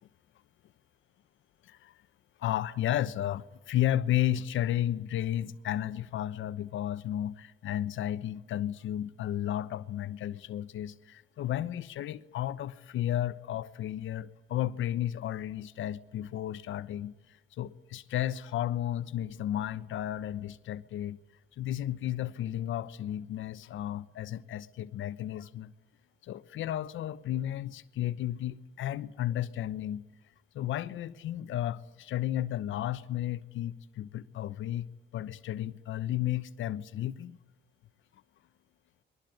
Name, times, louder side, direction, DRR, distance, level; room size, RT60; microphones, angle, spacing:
voice 1, 1.6-1.9 2.4-17.1 17.6-21.2 21.6-25.7 26.2-30.0 30.5-34.9 35.1-37.4, left 12 dB, 75° left, 1.0 m, -33 dB
29.5 x 21.5 x 9.3 m
cardioid pair, 90°, 20 cm